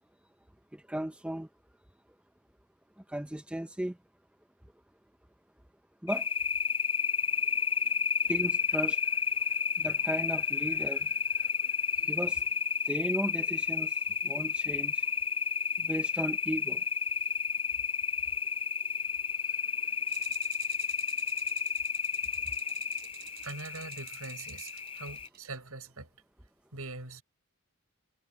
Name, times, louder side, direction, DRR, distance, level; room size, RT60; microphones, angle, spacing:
voice 1, 0.7-1.5 3.1-4.0 6.0-6.3 8.3-9.0 9.8-11.1 11.4-11.5 12.0-12.4 12.9-13.9 14.2-15.0 15.8-16.8, right 1 dB, 5° right, 0.6 m, -35 dB
sound 1, 6.1-25.3, left 6 dB, 25° left, 3.5 m, -31 dB
sound 2, 20.1-25.6, right 12 dB, 45° right, 5.0 m, -51 dB
voice 2, 23.4-26.1 26.7-27.2, right 3 dB, 75° right, 6.3 m, -42 dB
head